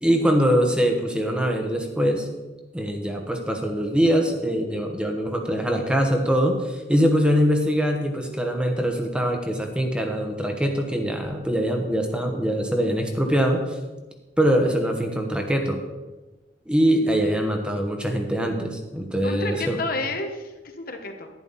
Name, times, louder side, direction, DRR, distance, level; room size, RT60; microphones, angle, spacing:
voice 1, 0.0-2.3 2.7-13.8 14.4-15.8 16.7-19.8, equal, 5° right, 3 dB, 1.1 m, -23 dB
voice 2, 19.2-21.3, left 2 dB, 55° left, 5 dB, 1.1 m, -30 dB
11.0 x 10.0 x 4.1 m, 1.2 s
head